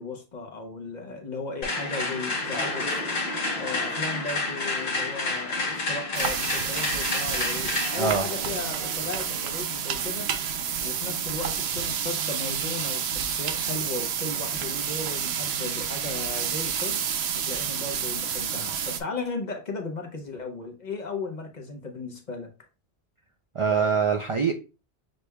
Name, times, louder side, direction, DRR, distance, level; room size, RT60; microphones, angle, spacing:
voice 1, 0.0-3.0 3.6-10.3 10.8-17.1 17.3-22.5, left 3 dB, 45° left, 0.9 m, -36 dB
sound 1, 1.6-9.6, left 3 dB, 70° left, 1.3 m, -30 dB
sound 2, 6.1-19.0, right 8 dB, 75° right, 0.8 m, -29 dB
voice 2, 23.5-24.5, right 6 dB, 45° right, 0.4 m, -23 dB
6.5 x 3.2 x 2.2 m
omnidirectional pair, 1.1 m